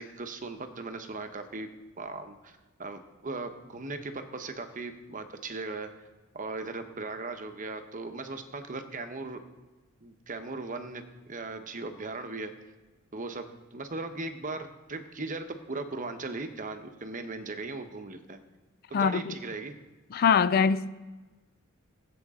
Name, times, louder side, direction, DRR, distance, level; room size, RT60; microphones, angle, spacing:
voice 1, 0.0-1.7 2.0-2.5 2.8-5.9 6.3-9.4 10.0-12.5 13.1-13.5 13.7-18.4 18.9-19.7, right 3 dB, 40° right, 0.9 m, -38 dB
voice 2, 18.9-19.3 20.1-20.9, left 6 dB, 45° left, 0.4 m, -23 dB
19.0 x 7.8 x 3.7 m
head